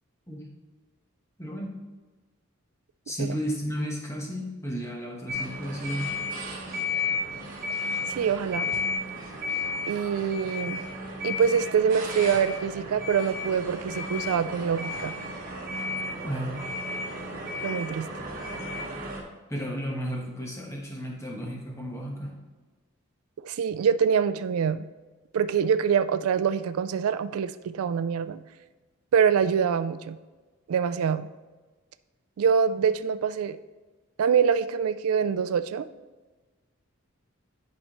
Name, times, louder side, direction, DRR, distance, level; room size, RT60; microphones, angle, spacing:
voice 1, 1.4-1.8 3.1-6.1 16.2-16.8 19.5-22.4, equal, 15° left, -1 dB, 1.1 m, -33 dB
sound 1, 5.3-19.2, left 2 dB, 40° right, 1.4 m, -33 dB
voice 2, 8.1-8.7 9.9-10.8 11.2-15.1 17.6-18.1 23.4-24.8 25.3-28.4 29.1-30.2 30.7-31.3 32.4-33.6 34.2-35.9, right 7 dB, 85° right, 12 dB, 0.3 m, -25 dB
10.5 x 4.2 x 3.0 m, 1.3 s
head